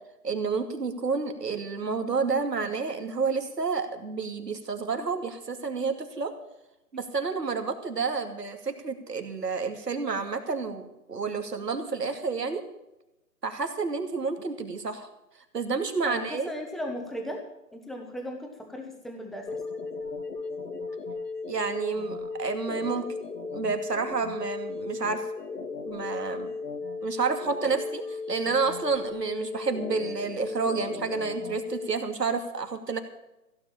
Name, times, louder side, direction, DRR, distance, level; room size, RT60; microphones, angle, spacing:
voice 1, 0.2-6.3 6.9-12.6 13.4-15.1 15.5-16.5 21.5-23.2 23.5-25.2 25.8-26.5 27.0-33.0, right 4 dB, 85° right, 6 dB, 2.6 m, -30 dB
voice 2, 16.0-17.4 17.7-19.5, equal, ahead, 2 dB, 0.8 m, -36 dB
sound 1, 19.5-31.9, left 4 dB, 85° left, 2.6 m, -35 dB
16.0 x 7.7 x 8.6 m, 0.92 s
hypercardioid pair, 145°, 47 cm